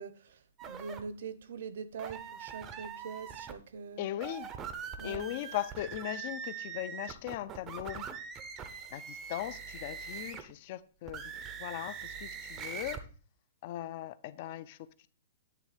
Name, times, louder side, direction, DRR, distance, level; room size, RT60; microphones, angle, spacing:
voice 1, 0.0-4.0 5.0-5.3, right 5 dB, 60° right, 0.7 m, -43 dB
sound 1, 0.6-1.0 2.0-3.5 4.1-10.5 11.0-13.0, right 6 dB, 15° right, 0.5 m, -42 dB
voice 2, 4.0-4.5 5.0-8.1 8.9-11.3 11.6-13.0 13.6-15.1, left 13 dB, 35° left, 0.4 m, -39 dB
9.4 x 3.2 x 5.0 m
hypercardioid pair, 175°, 0 cm